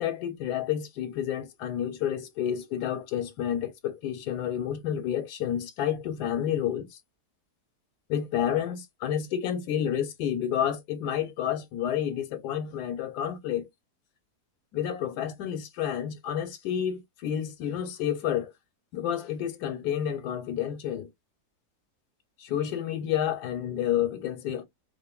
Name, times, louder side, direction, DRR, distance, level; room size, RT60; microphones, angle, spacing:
voice 1, 0.0-7.0 8.1-13.7 14.7-18.5 18.9-21.1 22.4-24.6, left 10 dB, 80° left, 1.2 m, -30 dB
2.5 x 2.5 x 2.3 m
omnidirectional pair, 1.7 m